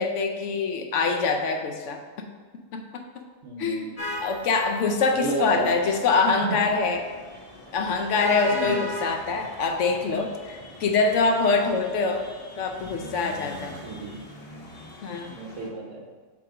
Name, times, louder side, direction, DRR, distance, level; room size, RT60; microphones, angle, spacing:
voice 1, 0.0-2.0 2.7-3.0 3.6-3.9 4.2-7.0 7.7-12.2 12.6-13.7 15.0-15.3, left 4 dB, 70° left, 4 dB, 1.0 m, -24 dB
voice 2, 3.4-4.1 5.1-5.7 6.4-6.6 8.5-8.7 13.8-14.1 15.2-16.0, right 3 dB, 65° right, 0 dB, 1.3 m, -32 dB
sound 1, 4.0-15.7, left 2 dB, 30° left, 0.8 m, -38 dB
7.1 x 3.0 x 4.9 m, 1.5 s
omnidirectional pair, 1.4 m